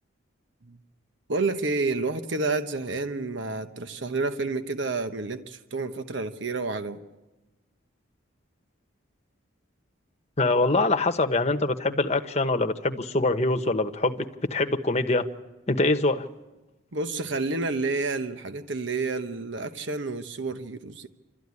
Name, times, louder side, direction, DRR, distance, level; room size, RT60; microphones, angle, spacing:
voice 1, 1.3-7.0 16.9-21.1, right 3 dB, 65° right, 1.0 m, -29 dB
voice 2, 10.4-15.3 15.7-16.3, left 2 dB, 30° left, 1.1 m, -24 dB
28.5 x 13.0 x 9.6 m
head